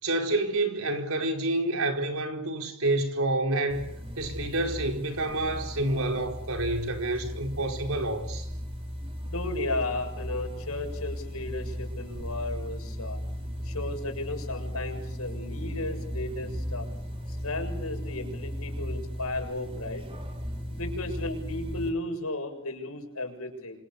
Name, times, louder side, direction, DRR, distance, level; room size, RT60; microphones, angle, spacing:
voice 1, 0.0-3.8 4.2-8.5, right 2 dB, 70° right, 4.6 m, -28 dB
sound 1, 3.7-21.9, equal, 25° right, 4.3 m, -36 dB
voice 2, 9.2-13.2 13.6-16.9 17.3-20.0 20.7-23.8, left 2 dB, 85° left, 7.1 m, -34 dB
27.5 x 27.0 x 7.0 m
head